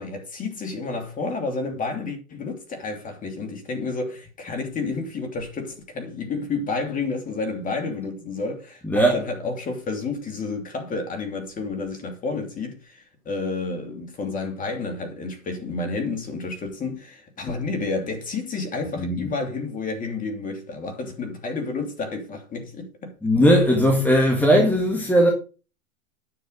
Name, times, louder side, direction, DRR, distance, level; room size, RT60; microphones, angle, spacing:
voice 1, 0.0-23.1, left 3 dB, 20° left, 2.8 m, -30 dB
voice 2, 8.8-9.2 17.5-17.6 19.0-19.3 23.2-25.3, equal, 5° left, 1.7 m, -18 dB
9.9 x 6.4 x 5.2 m
hypercardioid pair, 125°, 40 cm